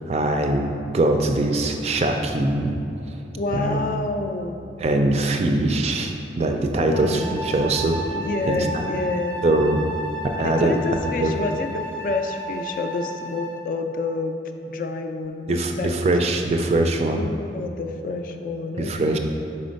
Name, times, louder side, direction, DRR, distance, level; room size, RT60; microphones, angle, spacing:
voice 1, 0.1-2.7 3.5-4.0 4.8-8.0 8.5-8.8 9.4-9.8 10.4-10.8 11.2-11.4 15.5-17.2 18.8-19.2, right 2 dB, 35° right, 4 dB, 0.3 m, -22 dB
voice 2, 3.3-4.6 6.7-7.3 8.1-9.4 10.4-14.4 14.7-16.1 17.1-19.2, left 3 dB, 50° left, 6 dB, 0.3 m, -28 dB
Wind instrument woodwind instrument, 6.9-13.7, right 1 dB, 5° left, 0.6 m, -33 dB
4.3 x 4.2 x 5.1 m, 2.7 s
head